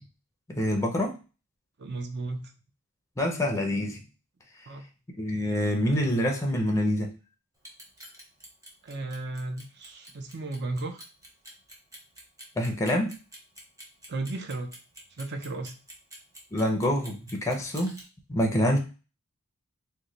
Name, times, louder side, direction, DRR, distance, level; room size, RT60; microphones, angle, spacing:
voice 1, 0.5-1.1 3.2-4.0 5.2-7.1 12.6-13.1 16.5-18.0 18.3-18.8, equal, 15° left, 2 dB, 0.5 m, -26 dB
voice 2, 1.8-2.5 4.7-4.8 8.8-11.0 14.1-14.8 15.2-15.8, right 2 dB, 50° right, 6 dB, 0.5 m, -34 dB
Clock, 7.5-18.0, right 1 dB, 15° right, 0.9 m, -47 dB
3.0 x 2.1 x 3.8 m, 0.33 s
head